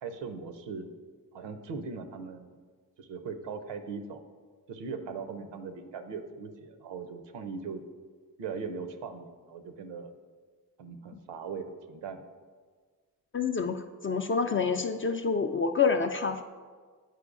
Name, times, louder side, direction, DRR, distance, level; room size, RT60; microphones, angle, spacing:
voice 1, 0.0-0.9 1.3-2.6 3.0-4.2 4.7-7.8 8.4-10.1 10.8-12.2, right 5 dB, 65° right, 8 dB, 0.7 m, -39 dB
voice 2, 13.3-16.4, left 5 dB, 30° left, 6 dB, 0.3 m, -28 dB
9.1 x 4.6 x 2.5 m, 1.6 s
hypercardioid pair, 40°, 47 cm